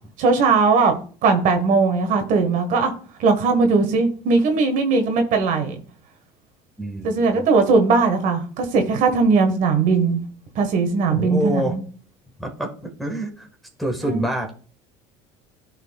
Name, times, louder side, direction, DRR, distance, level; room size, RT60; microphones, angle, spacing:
voice 1, 0.2-2.9 3.2-5.7 7.0-10.2 10.5-11.8 14.1-14.2, right 4 dB, 55° right, 6 dB, 1.6 m, -19 dB
voice 2, 6.8-7.4 11.1-11.8 12.4-13.5 13.8-14.7, right 1 dB, ahead, 1 dB, 1.5 m, -27 dB
13.5 x 4.5 x 2.4 m, 0.42 s
supercardioid pair, 100°, 15 cm